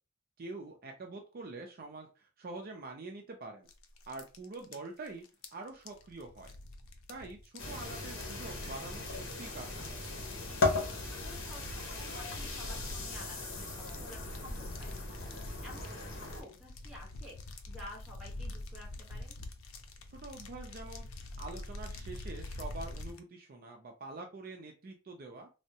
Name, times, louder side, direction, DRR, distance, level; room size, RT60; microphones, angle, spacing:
voice 1, 0.4-3.7 4.1-5.2 5.5-6.5 7.1-10.0 20.1-21.1 21.4-25.5, right 3 dB, 45° right, 2 dB, 0.4 m, -45 dB
sound 1, 3.7-23.2, left 2 dB, 85° left, 0.5 m, -46 dB
sound 2, 7.6-16.4, left 3 dB, 65° left, 0.9 m, -37 dB
voice 2, 11.4-15.1 15.6-17.4 17.7-19.4, left 1 dB, 5° right, -3 dB, 1.0 m, -51 dB
3.4 x 2.1 x 2.7 m, 0.32 s
head